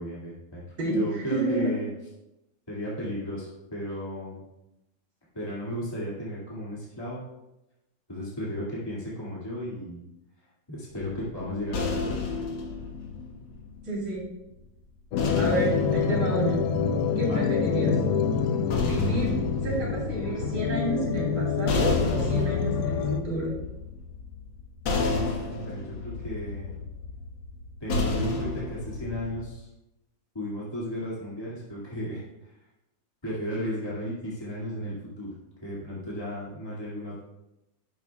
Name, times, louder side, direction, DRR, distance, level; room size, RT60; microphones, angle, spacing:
voice 1, 0.0-0.6 0.9-1.9 2.7-4.4 5.3-7.2 8.1-10.0 10.7-12.2 17.3-17.4 25.1-26.8 27.8-29.7 30.3-32.5 33.2-35.3 35.6-37.2, equal, 15° left, -8 dB, 1.9 m, -34 dB
voice 2, 0.8-1.7 13.9-14.3 15.4-16.6 17.2-18.0 18.8-19.3 19.6-23.5, right 1 dB, 65° right, -4 dB, 4.2 m, -30 dB
sound 1, 10.9-14.2 15.2-17.4 18.4-29.5, left 3 dB, 85° left, 2.1 m, -32 dB
sound 2, 15.1-23.2, left 5 dB, 65° left, 0.9 m, -26 dB
11.5 x 11.0 x 2.3 m, 0.95 s
omnidirectional pair, 2.1 m